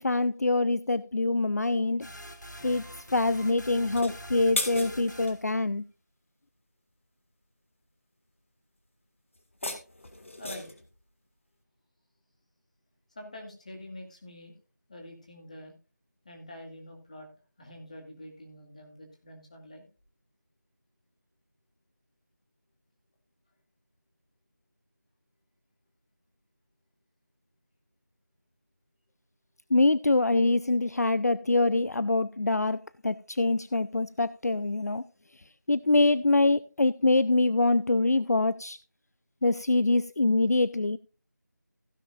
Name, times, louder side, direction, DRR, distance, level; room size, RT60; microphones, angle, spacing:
voice 1, 0.0-2.1 2.6-5.9 29.7-32.8 33.0-35.0 35.7-38.8 39.4-41.0, left 2 dB, 60° left, 0.5 m, -25 dB
sound 1, 2.0-5.5, equal, 75° left, 2.8 m, -45 dB
sound 2, 3.8-5.4 9.3-10.9, left 2 dB, 45° left, 1.8 m, -36 dB
voice 2, 10.4-10.7 13.2-14.6 14.9-15.7 16.2-17.3 17.6-19.9, left 1 dB, 25° left, 2.2 m, -46 dB
16.0 x 9.9 x 2.4 m
figure-of-eight pair, 170°, 10 cm